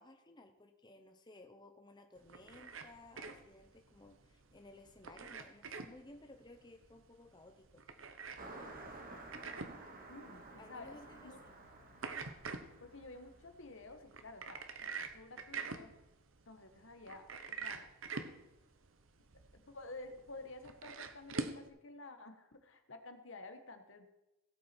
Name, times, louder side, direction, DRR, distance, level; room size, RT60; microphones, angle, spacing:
voice 1, 0.0-7.8 10.6-11.6, left 2 dB, 20° left, 5 dB, 0.9 m, -58 dB
sound 1, 2.2-21.7, right 4 dB, 70° right, 1.0 m, -47 dB
Car passing by, 8.4-14.2, right 2 dB, 45° right, 1.9 m, -53 dB
voice 2, 10.1-11.4 12.8-15.9 16.4-17.9 19.5-24.1, left 2 dB, 65° left, 7 dB, 1.4 m, -52 dB
16.5 x 8.3 x 4.5 m, 0.95 s
head